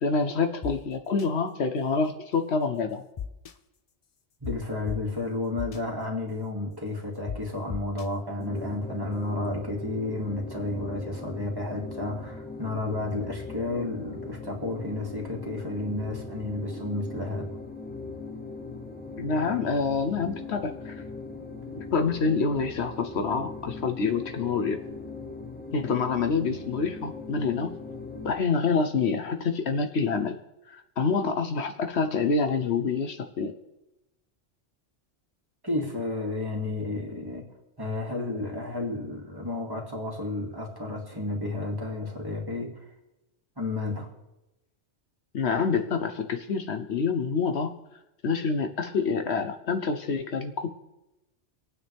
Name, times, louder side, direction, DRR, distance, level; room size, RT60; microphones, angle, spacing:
voice 1, 0.0-3.0 19.2-20.9 21.9-24.8 25.7-27.8 28.2-30.4 30.7-33.5 45.3-47.7 48.2-50.7, left 5 dB, 65° left, 7 dB, 1.0 m, -27 dB
sound 1, 0.6-0.7 1.2-1.3 3.2-3.5 4.4-4.5 4.9-5.0 5.6-5.8 7.3-7.4 7.7-8.1, left 8 dB, 45° left, 0.5 m, -34 dB
voice 2, 4.4-17.5 35.6-37.5 37.8-42.8 43.6-44.1, left 2 dB, 20° right, -1 dB, 2.4 m, -32 dB
sound 2, 8.4-28.3, left 3 dB, 10° left, 1.0 m, -40 dB
25.5 x 9.4 x 3.5 m, 0.97 s
omnidirectional pair, 1.2 m